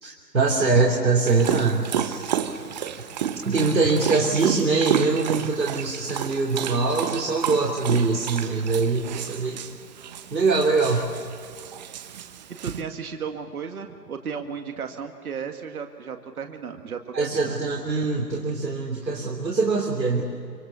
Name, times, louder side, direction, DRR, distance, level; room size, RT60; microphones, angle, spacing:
voice 1, 0.0-2.3 3.4-9.6 10.3-11.1 17.1-20.2, right 3 dB, 90° right, -1 dB, 3.5 m, -23 dB
Dog, 1.3-12.8, right 9 dB, 25° right, 1.1 m, -31 dB
voice 2, 12.6-17.6, right 6 dB, 60° right, 5 dB, 2.1 m, -34 dB
26.0 x 25.5 x 7.0 m, 2.4 s
figure-of-eight pair, 145°, 49 cm